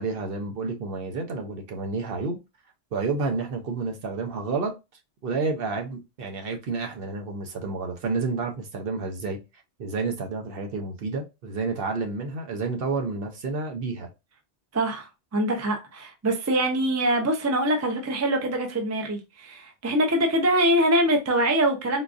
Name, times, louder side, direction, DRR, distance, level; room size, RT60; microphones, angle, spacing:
voice 1, 0.0-2.4 2.9-4.7 5.2-9.4 9.8-14.1, right 4 dB, 60° right, 0.8 m, -30 dB
voice 2, 14.7-22.0, right 1 dB, 20° right, 0.4 m, -24 dB
3.9 x 2.4 x 2.4 m
omnidirectional pair, 1.2 m